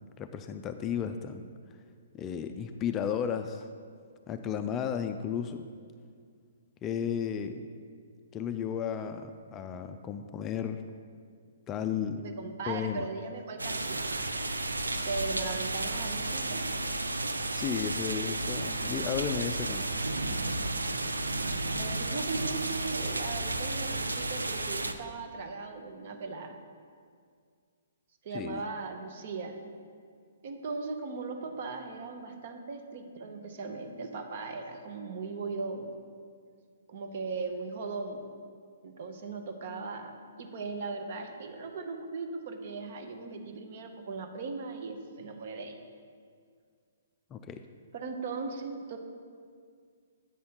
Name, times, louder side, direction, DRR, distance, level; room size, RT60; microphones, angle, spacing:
voice 1, 0.2-1.5 2.1-3.7 4.3-5.7 6.8-7.7 8.3-10.8 11.7-12.2 12.7-13.0 17.5-19.9 28.3-28.6 47.3-47.6, left 8 dB, 20° left, 8 dB, 0.3 m, -34 dB
voice 2, 12.2-14.4 14.9-16.6 21.8-26.5 28.2-29.6 30.4-35.9 36.9-38.3 38.8-40.1 40.4-45.8 47.9-49.0, right 4 dB, 50° right, 5 dB, 0.9 m, -38 dB
sound 1, 13.6-24.9, right 2 dB, 85° right, 0.4 m, -32 dB
8.7 x 4.2 x 5.6 m, 2.1 s
figure-of-eight pair, 125°, 0 cm